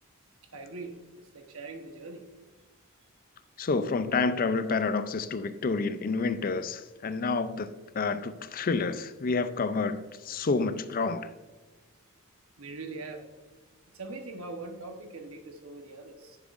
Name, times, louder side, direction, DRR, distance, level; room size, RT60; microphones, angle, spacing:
voice 1, 0.5-2.3 12.6-13.3 13.9-16.4, right 3 dB, 70° right, 5 dB, 1.1 m, -42 dB
voice 2, 3.6-7.7 7.9-10.0 10.2-11.3, left 4 dB, 40° left, 12 dB, 0.4 m, -29 dB
10.5 x 7.2 x 2.5 m, 1.3 s
head